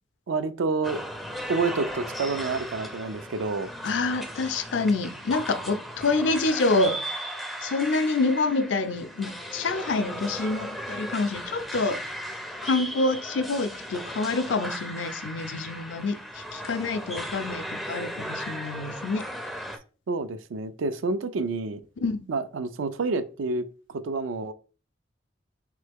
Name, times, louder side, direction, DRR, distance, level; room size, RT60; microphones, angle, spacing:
voice 1, 0.3-1.0 1.5-3.7 20.1-21.8 22.3-24.5, right 3 dB, 80° right, 0.4 m, -28 dB
sound 1, 0.8-19.8, equal, ahead, 0.4 m, -36 dB
voice 2, 3.8-7.0 7.6-12.0 12.6-19.2 22.0-22.3, left 3 dB, 65° left, 0.5 m, -27 dB
3.6 x 3.2 x 3.4 m
head